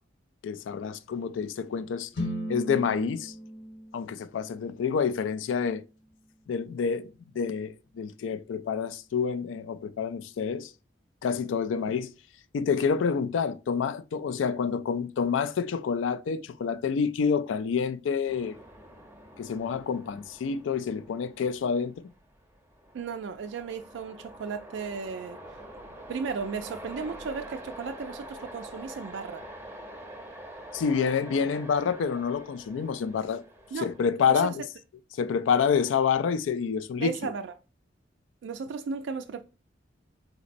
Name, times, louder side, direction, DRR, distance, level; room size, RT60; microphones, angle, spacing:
voice 1, 0.4-2.1 2.5-3.3 3.9-5.8 6.5-7.1 7.3-10.7 11.2-12.1 12.5-18.6 19.4-22.1 30.7-33.4 33.8-34.5 35.1-37.1, left 6 dB, 90° left, 0.3 m, -28 dB
sound 1, 2.1-6.2, equal, 70° left, 1.0 m, -38 dB
sound 2, 18.2-34.0, right 1 dB, 15° right, 0.6 m, -46 dB
voice 2, 22.9-25.4 26.1-29.4 33.7-33.9 34.3-34.5 37.0-37.5 38.4-39.4, right 5 dB, 70° right, 0.3 m, -35 dB
4.0 x 4.0 x 2.5 m
head